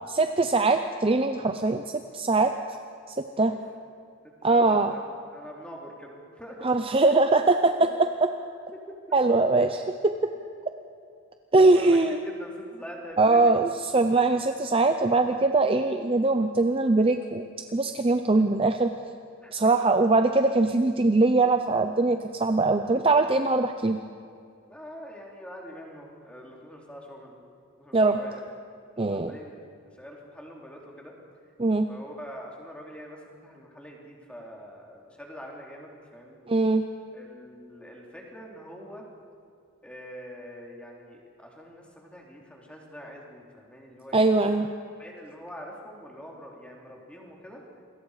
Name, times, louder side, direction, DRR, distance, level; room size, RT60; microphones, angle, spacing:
voice 1, 0.0-1.8 2.1-2.5 3.1-3.5 4.4-4.9 6.6-7.7 9.1-10.1 11.5-12.2 13.2-17.4 17.7-18.9 19.5-24.0 27.9-28.2 29.0-29.3 31.6-31.9 36.5-36.8 44.1-44.7, right 3 dB, 25° right, 7 dB, 0.6 m, -22 dB
voice 2, 4.2-5.0 5.3-6.7 7.8-7.9 8.7-9.0 11.5-13.7 19.4-19.5 21.6-21.7 24.7-27.5 27.8-28.4 29.0-29.7 29.9-31.1 31.9-36.4 37.1-39.1 39.8-44.2 45.0-47.6, equal, 5° left, -1 dB, 3.1 m, -44 dB
27.5 x 22.0 x 4.9 m, 2.3 s
head